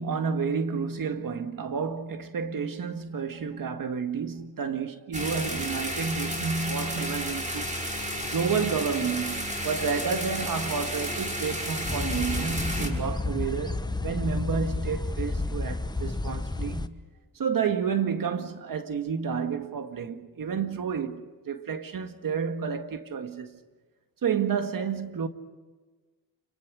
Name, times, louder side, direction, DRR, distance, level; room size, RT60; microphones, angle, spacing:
voice 1, 0.0-7.7 8.3-17.0 17.4-23.6 24.2-25.3, right 6 dB, 50° right, 1.9 m, -30 dB
sound 1, 5.1-12.9, equal, 15° right, 5.8 m, -32 dB
sound 2, 11.8-16.9, left 3 dB, 10° left, 1.1 m, -31 dB
29.5 x 22.5 x 6.4 m
cardioid pair, 80°, 42 cm